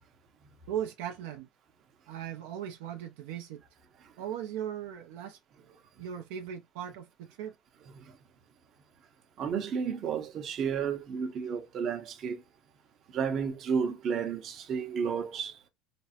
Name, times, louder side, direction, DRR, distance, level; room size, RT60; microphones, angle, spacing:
voice 1, 0.7-1.5 2.1-3.6 4.2-5.4 6.0-7.5, right 9 dB, 75° right, 0.5 m, -38 dB
voice 2, 9.4-12.4 13.1-15.5, right 6 dB, 40° right, 0.7 m, -32 dB
3.3 x 2.0 x 2.8 m
supercardioid pair, 130°, 0 cm